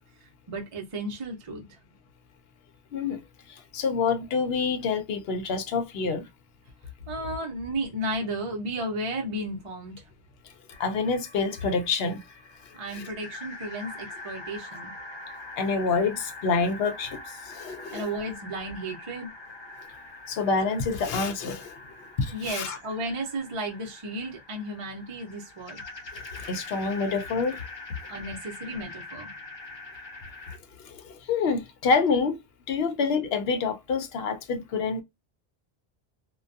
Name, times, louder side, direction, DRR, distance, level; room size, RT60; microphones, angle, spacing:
voice 1, 0.2-1.8 7.1-10.1 12.7-14.9 17.9-19.3 22.3-25.8 28.1-29.3, right 1 dB, 35° right, 0.6 m, -34 dB
voice 2, 2.9-3.2 3.5-6.3 10.4-10.5 10.8-12.2 12.9-13.1 15.6-18.1 20.3-21.8 22.2-22.8 26.1-27.7 30.5-32.4 32.7-35.0, left 4 dB, 70° left, 0.7 m, -27 dB
sound 1, 10.7-30.6, left 2 dB, 45° left, 0.3 m, -44 dB
2.2 x 2.2 x 2.5 m
omnidirectional pair, 1.1 m